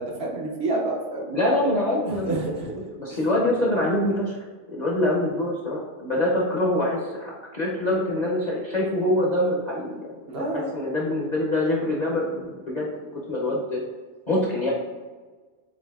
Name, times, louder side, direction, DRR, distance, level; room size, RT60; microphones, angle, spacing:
voice 1, 0.0-1.3 2.0-2.7 3.1-3.3 10.3-10.7, right 2 dB, 60° right, -1 dB, 0.9 m, -29 dB
voice 2, 1.3-2.4 3.0-4.4 4.7-13.8 14.3-14.7, left 1 dB, 45° left, -4 dB, 0.7 m, -25 dB
7.0 x 2.6 x 2.3 m, 1.4 s
omnidirectional pair, 1.3 m